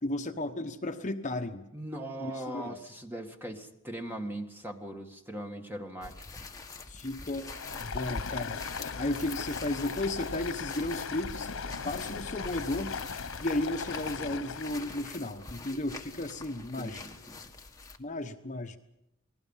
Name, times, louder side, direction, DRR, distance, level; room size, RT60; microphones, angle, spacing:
voice 1, 0.0-1.7 2.2-2.8 6.9-7.5 7.8-8.6 9.0-11.5 11.8-13.0 13.4-17.0 18.0-18.8, left 1 dB, 35° left, 6 dB, 1.0 m, -34 dB
voice 2, 1.7-6.4 16.7-17.4, right 1 dB, 10° right, 3 dB, 2.0 m, -40 dB
sound 1, 6.0-18.0, left 4 dB, 15° left, 1.7 m, -46 dB
Stream, 7.4-14.9, left 5 dB, 90° left, 1.0 m, -38 dB
29.0 x 20.0 x 5.7 m, 0.88 s
head